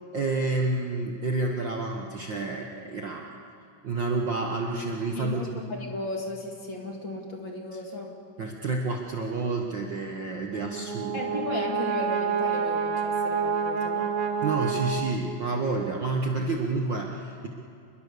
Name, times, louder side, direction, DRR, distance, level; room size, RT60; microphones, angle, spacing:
voice 1, 0.1-3.4 3.8-5.6 8.4-11.2 14.4-17.5, right 3 dB, 90° right, 1 dB, 1.0 m, -29 dB
voice 2, 5.2-8.1 11.1-14.2, left 2 dB, 35° left, 1 dB, 2.6 m, -35 dB
Brass instrument, 10.5-15.6, right 6 dB, 65° right, 1.5 m, -28 dB
28.5 x 21.5 x 6.8 m, 2.5 s
omnidirectional pair, 4.3 m